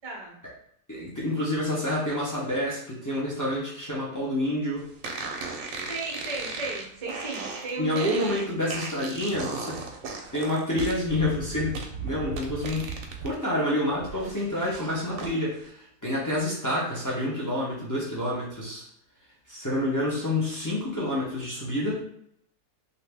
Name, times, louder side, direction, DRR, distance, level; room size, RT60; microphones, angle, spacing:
voice 1, 0.0-0.4 5.9-8.2, right 3 dB, 50° right, -1 dB, 0.4 m, -35 dB
voice 2, 0.9-4.9 7.8-9.8 10.3-12.9 13.2-18.8 19.5-22.0, left 1 dB, 25° left, -6 dB, 0.4 m, -28 dB
sound 1, 5.0-13.3 13.7-15.3, right 4 dB, 70° right, 0.9 m, -36 dB
2.6 x 2.6 x 3.4 m, 0.70 s
omnidirectional pair, 1.7 m